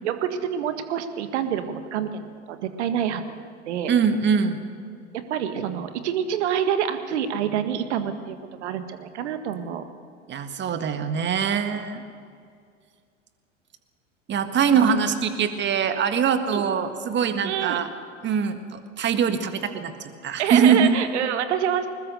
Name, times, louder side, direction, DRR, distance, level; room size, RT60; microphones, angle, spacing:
voice 1, 0.0-3.9 5.1-9.9 14.7-14.8 16.5-16.7 17.4-17.8 20.4-21.9, right 9 dB, 60° right, 9 dB, 1.8 m, -27 dB
voice 2, 3.9-4.6 10.3-12.0 14.3-17.9 18.2-21.0, right 7 dB, 30° right, 9 dB, 1.7 m, -23 dB
21.0 x 20.5 x 6.8 m, 2.2 s
figure-of-eight pair, 80°, 38 cm